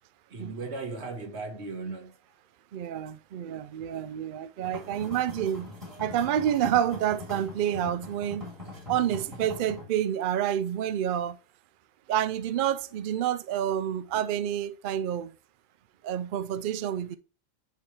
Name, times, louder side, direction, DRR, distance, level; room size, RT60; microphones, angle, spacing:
voice 1, 0.3-2.2 8.9-9.4, right 3 dB, 55° right, 1.5 m, -37 dB
voice 2, 2.7-5.7 6.0-8.5 8.9-11.4 12.1-15.3 16.0-17.2, right 10 dB, 80° right, 0.4 m, -28 dB
sound 1, 4.6-9.8, left 2 dB, 25° right, 3.3 m, -42 dB
9.3 x 3.5 x 3.1 m
omnidirectional pair, 1.4 m